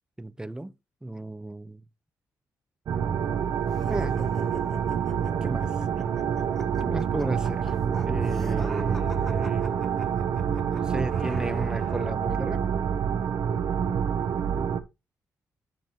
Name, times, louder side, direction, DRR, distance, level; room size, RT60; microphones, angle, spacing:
voice 1, 0.2-0.7 1.0-1.8 3.9-4.2 5.4-5.8 6.8-7.8 8.0-9.7 10.7-12.7, right 1 dB, 10° right, 0.8 m, -34 dB
sound 1, 2.9-14.8, right 7 dB, 70° right, 0.9 m, -27 dB
sound 2, 3.7-12.1, equal, 5° left, 1.6 m, -45 dB
10.5 x 5.3 x 2.9 m
cardioid pair, 70°, 7 cm